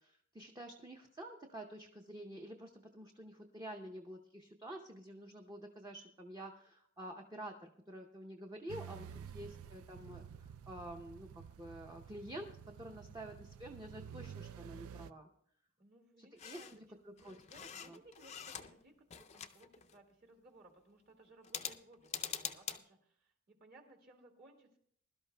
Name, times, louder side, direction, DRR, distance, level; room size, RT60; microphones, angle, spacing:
voice 1, 0.0-15.3 16.2-17.4 17.9-18.0, right 1 dB, 20° right, 2 dB, 0.7 m, -49 dB
sound 1, 8.7-15.1, right 8 dB, 80° right, 0.4 m, -51 dB
voice 2, 9.2-9.5 15.8-24.8, right 2 dB, 45° right, 3 dB, 2.1 m, -62 dB
sound 2, 16.4-16.8 17.2-18.8 19.1-20.0 21.4-22.8, left 8 dB, 30° left, 0.5 m, -45 dB
21.5 x 12.0 x 2.2 m, 0.65 s
head